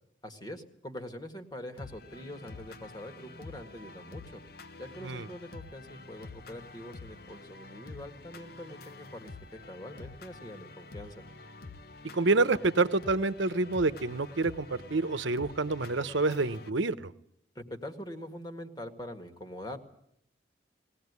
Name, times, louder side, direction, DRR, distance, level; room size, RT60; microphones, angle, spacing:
voice 1, 0.2-4.4 4.8-11.2 17.6-19.8, left 1 dB, 20° left, 5 dB, 1.8 m, -44 dB
sound 1, 1.8-16.7, left 3 dB, 50° left, 0.8 m, -48 dB
voice 2, 12.1-17.1, right 3 dB, 75° right, 13 dB, 0.9 m, -28 dB
20.5 x 16.5 x 9.6 m, 0.76 s
head